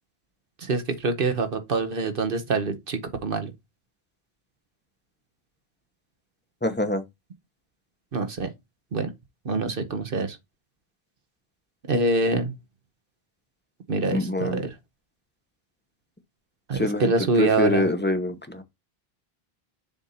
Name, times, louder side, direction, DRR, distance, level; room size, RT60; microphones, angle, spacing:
voice 1, 0.6-3.5 8.1-8.5 8.9-9.1 9.4-10.4 11.9-12.5 13.9-14.7 16.7-17.9, right 3 dB, 60° right, 1.1 m, -25 dB
voice 2, 6.6-7.0 14.1-14.6 16.7-17.0 17.4-18.6, left 2 dB, 10° left, 0.8 m, -25 dB
7.2 x 2.7 x 5.6 m
omnidirectional pair, 1.0 m